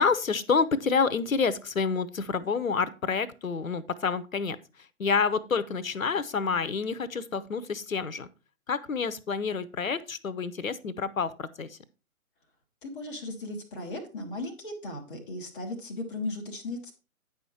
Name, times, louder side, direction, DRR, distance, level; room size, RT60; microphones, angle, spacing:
voice 1, 0.0-4.6 5.0-8.3 8.7-11.8, left 5 dB, 70° left, 15 dB, 0.8 m, -28 dB
voice 2, 12.8-16.9, left 2 dB, 5° left, -9 dB, 0.6 m, -36 dB
9.3 x 5.8 x 4.4 m, 0.31 s
figure-of-eight pair, 135°, 43 cm